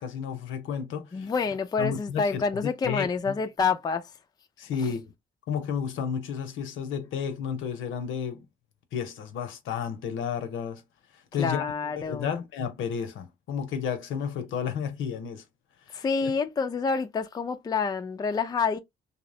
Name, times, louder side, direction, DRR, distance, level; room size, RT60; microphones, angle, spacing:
voice 1, 0.0-1.3 1.8-3.4 4.6-5.1 5.5-8.5 8.9-10.8 11.3-11.7 12.0-15.4 15.9-16.3, left 7 dB, 80° left, 0.7 m, -32 dB
voice 2, 1.1-4.1 4.8-4.9 11.4-12.3 15.9-18.8, left 5 dB, 20° left, 0.4 m, -28 dB
2.7 x 2.0 x 2.6 m
cardioid pair, 90°, 20 cm